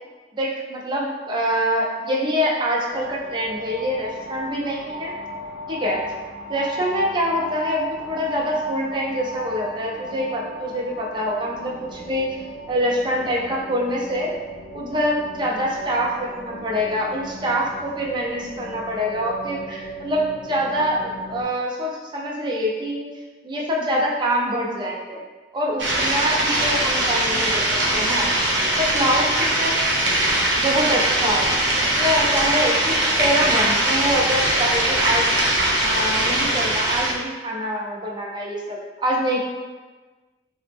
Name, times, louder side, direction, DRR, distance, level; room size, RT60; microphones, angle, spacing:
voice 1, 0.3-5.1 5.7-6.0 6.5-12.4 12.7-14.3 14.7-23.1 23.4-25.2 25.5-27.7 27.9-28.3 28.8-29.8 30.6-31.5 31.8-35.3 35.8-39.4, equal, 25° right, -2 dB, 0.4 m, -25 dB
sound 1, 2.9-21.4, equal, 60° left, 0.5 m, -36 dB
sound 2, 25.8-37.1, right 1 dB, 70° right, 0.7 m, -21 dB
4.0 x 2.0 x 3.3 m, 1.3 s
head